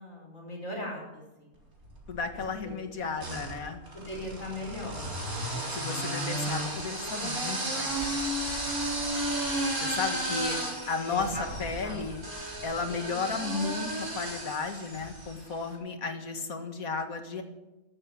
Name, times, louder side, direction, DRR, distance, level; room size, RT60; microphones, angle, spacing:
voice 1, 0.0-1.5 3.9-5.0 5.4-6.1 7.4-7.6 10.9-11.4 11.8-12.0, left 1 dB, 65° left, -1 dB, 5.8 m, -39 dB
sound 1, 1.8-2.5 3.2-15.5, right 1 dB, 85° right, 4.5 m, -33 dB
voice 2, 2.1-3.8 5.7-8.1 9.8-10.6 10.9-12.2 12.6-17.4, left 4 dB, 80° left, 6 dB, 2.1 m, -34 dB
14.0 x 12.0 x 7.5 m, 1.0 s
omnidirectional pair, 1.5 m